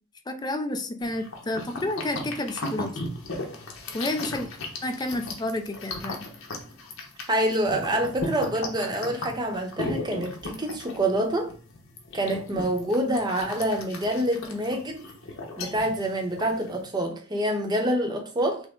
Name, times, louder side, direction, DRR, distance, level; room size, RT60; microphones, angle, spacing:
voice 1, 0.3-3.0 3.9-4.5 4.8-6.3, left 1 dB, 20° left, 0.4 m, -30 dB
sound 1, 1.0-16.8, left 2 dB, 70° left, 1.0 m, -37 dB
voice 2, 7.3-11.5 12.1-15.0 15.6-18.6, right 1 dB, 20° right, 0.8 m, -26 dB
6.1 x 2.1 x 3.7 m
head